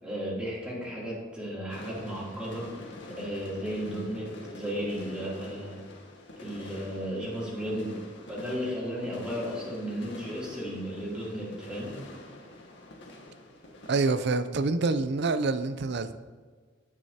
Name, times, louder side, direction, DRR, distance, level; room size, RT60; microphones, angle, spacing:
voice 1, 0.0-5.8 6.4-8.0 8.3-11.9, equal, 5° right, -6 dB, 2.9 m, -34 dB
sound 1, 1.7-14.2, left 1 dB, 65° left, 1.6 m, -46 dB
voice 2, 13.9-16.2, right 3 dB, 60° right, 11 dB, 0.5 m, -26 dB
17.0 x 6.3 x 2.8 m, 1.5 s
head